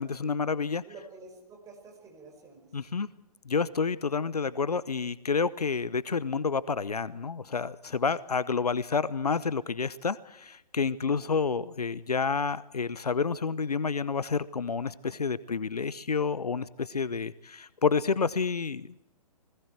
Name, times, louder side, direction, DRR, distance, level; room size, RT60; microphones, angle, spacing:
voice 1, 0.0-0.8 2.7-3.1 3.5-19.0, left 5 dB, 70° left, 18 dB, 0.9 m, -29 dB
voice 2, 0.8-2.7 11.1-11.2, right 3 dB, 15° right, 3 dB, 5.4 m, -49 dB
29.5 x 20.0 x 4.6 m, 0.87 s
figure-of-eight pair, 125°, 20 cm